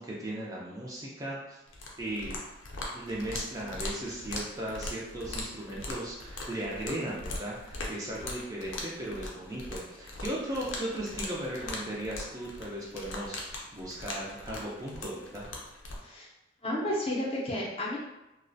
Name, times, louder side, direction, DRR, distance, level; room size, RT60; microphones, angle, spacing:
voice 1, 0.0-1.6 2.0-2.4 2.9-15.5, right 1 dB, 20° right, -5 dB, 0.3 m, -37 dB
sound 1, 1.7-16.0, left 2 dB, 80° left, 0.5 m, -40 dB
voice 2, 16.6-18.0, left 1 dB, 30° left, -5 dB, 0.5 m, -32 dB
2.3 x 2.1 x 2.5 m, 0.95 s
head